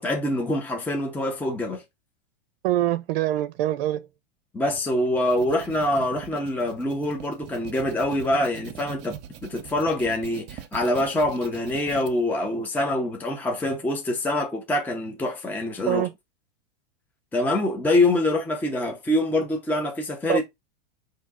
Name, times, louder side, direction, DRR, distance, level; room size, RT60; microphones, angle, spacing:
voice 1, 0.0-1.8 4.5-9.2 9.5-16.1 17.3-20.4, left 1 dB, 5° left, 0.6 m, -25 dB
voice 2, 2.6-4.1 15.9-16.1 20.3-20.4, right 13 dB, 70° right, 0.5 m, -24 dB
sound 1, 5.1-12.1, right 10 dB, 35° right, 0.7 m, -42 dB
4.3 x 2.7 x 3.5 m
supercardioid pair, 130°, 30 cm